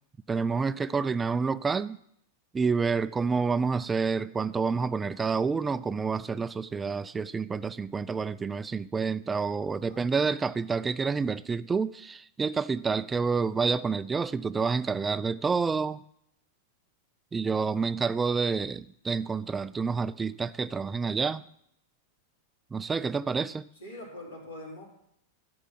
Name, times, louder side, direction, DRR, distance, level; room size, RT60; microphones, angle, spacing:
voice 1, 0.3-2.0 2.5-16.0 17.3-21.4 22.7-23.6, right 5 dB, 15° right, 0.3 m, -28 dB
voice 2, 9.7-10.0 23.8-24.8, left 1 dB, 80° left, 3.7 m, -43 dB
11.5 x 5.4 x 5.8 m
figure-of-eight pair, 95°, 0 cm